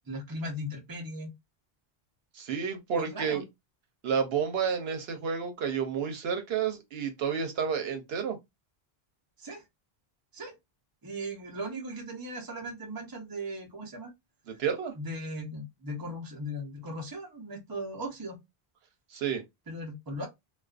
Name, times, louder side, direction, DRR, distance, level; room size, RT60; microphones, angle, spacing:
voice 1, 0.1-1.3 3.0-3.4 9.4-9.6 10.3-10.5 11.0-14.1 15.0-18.4 19.7-20.3, equal, 25° right, 0.6 m, -38 dB
voice 2, 2.3-3.4 4.0-8.4 14.5-14.9 19.1-19.4, right 7 dB, 80° right, 0.9 m, -30 dB
2.4 x 2.3 x 2.4 m
omnidirectional pair, 1.0 m